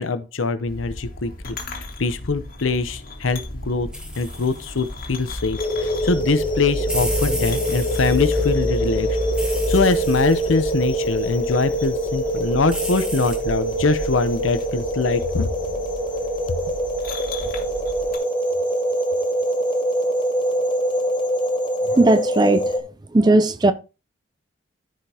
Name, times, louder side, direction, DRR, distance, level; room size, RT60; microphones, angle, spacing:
voice 1, 0.0-3.9 4.2-9.1 9.7-15.5 16.5-16.6, left 4 dB, 85° left, 0.8 m, -23 dB
sound 1, 0.7-18.2, left 1 dB, 45° left, 1.8 m, -32 dB
sound 2, 3.9-14.6, equal, 5° right, 1.3 m, -35 dB
sound 3, 5.6-22.8, right 1 dB, 25° left, 1.2 m, -24 dB
voice 2, 22.0-22.6 23.1-23.7, right 2 dB, 20° right, 0.4 m, -16 dB
13.5 x 5.1 x 2.8 m
head